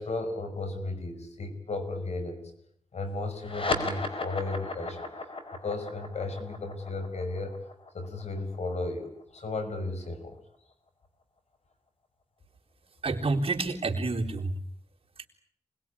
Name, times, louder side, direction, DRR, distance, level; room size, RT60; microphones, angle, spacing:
voice 1, 0.0-2.5 2.9-5.1 5.6-7.5 7.9-10.4, left 2 dB, 75° left, 7 dB, 5.3 m, -34 dB
sound 1, 3.4-10.2, left 2 dB, 50° left, 4.8 m, -36 dB
voice 2, 13.0-14.5 15.2-15.3, right 3 dB, 55° right, 0 dB, 3.9 m, -28 dB
25.5 x 20.5 x 9.9 m, 0.69 s
cardioid pair, 65°, 11 cm